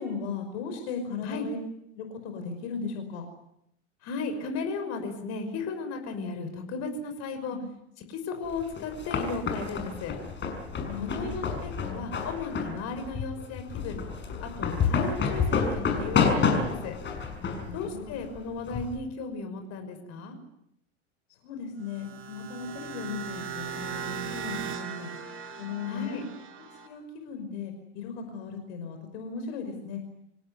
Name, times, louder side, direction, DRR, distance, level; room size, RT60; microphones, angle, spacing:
voice 1, 0.0-1.6 1.9-3.3 7.5-7.7 10.9-11.3 17.7-18.2 21.3-25.1 25.6-26.2 26.8-30.0, left 5 dB, 60° left, 5 dB, 5.3 m, -37 dB
voice 2, 4.0-7.6 8.1-10.2 11.0-14.0 14.4-16.9 17.7-20.4 25.9-26.2, left 4 dB, 45° left, 7 dB, 6.1 m, -35 dB
sound 1, 8.5-18.9, left 5 dB, 30° left, 6.5 m, -29 dB
sound 2, 21.8-26.9, right 7 dB, 35° right, 5.3 m, -38 dB
27.0 x 17.5 x 9.5 m, 0.76 s
hypercardioid pair, 95°, 36 cm